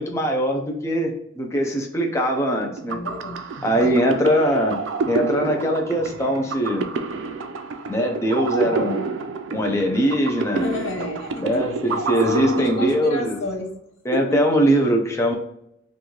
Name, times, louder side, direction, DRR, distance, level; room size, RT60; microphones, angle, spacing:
voice 1, 0.0-3.0 3.6-4.8 5.1-6.9 7.9-9.0 9.5-10.7 11.4-13.4 14.0-15.3, equal, 15° left, 1 dB, 0.6 m, -21 dB
sound 1, 2.6-13.4, right 4 dB, 70° right, 0.4 m, -29 dB
voice 2, 2.9-3.4 3.7-4.0 10.5-12.0 12.2-13.7 14.1-14.4, left 1 dB, 75° left, 2 dB, 0.7 m, -28 dB
3.1 x 2.6 x 3.7 m, 0.75 s
head